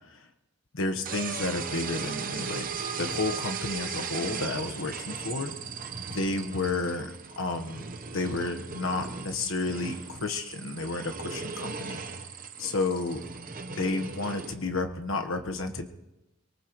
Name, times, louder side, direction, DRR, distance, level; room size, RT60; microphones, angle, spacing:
voice 1, 0.7-2.7 3.0-5.5 6.1-7.9 8.1-12.0 12.6-13.2 13.7-15.9, left 3 dB, 85° left, 5 dB, 1.2 m, -31 dB
sound 1, 1.1-14.5, right 5 dB, 45° right, 0.9 m, -37 dB
24.0 x 19.0 x 3.1 m, 0.98 s
head